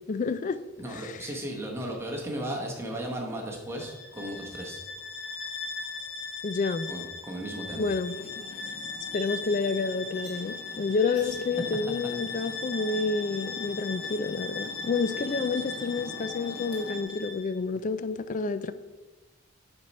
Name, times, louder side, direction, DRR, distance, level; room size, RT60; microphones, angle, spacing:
voice 1, 0.1-0.6 0.9-1.3 6.4-6.9 7.8-8.1 9.1-18.7, left 4 dB, 40° left, 0.3 m, -29 dB
voice 2, 0.8-4.8 6.9-7.9 11.2-11.4, right 1 dB, 10° right, 1.1 m, -35 dB
Bowed string instrument, 3.7-17.5, left 4 dB, 70° left, 1.5 m, -38 dB
sound 1, 8.0-17.0, left 2 dB, 20° left, 1.7 m, -45 dB
7.7 x 4.4 x 5.4 m
head